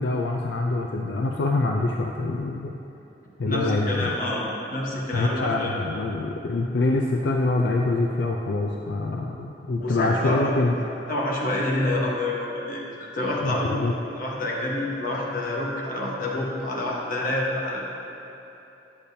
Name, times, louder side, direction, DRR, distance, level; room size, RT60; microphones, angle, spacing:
voice 1, 0.0-2.8 3.4-4.1 5.1-10.8 13.4-13.9, left 2 dB, 80° left, 1 dB, 0.4 m, -25 dB
voice 2, 3.4-5.7 9.8-10.5 11.1-13.8 14.1-17.8, left 1 dB, 55° left, -3 dB, 1.2 m, -28 dB
10.0 x 6.8 x 2.7 m, 3.0 s
head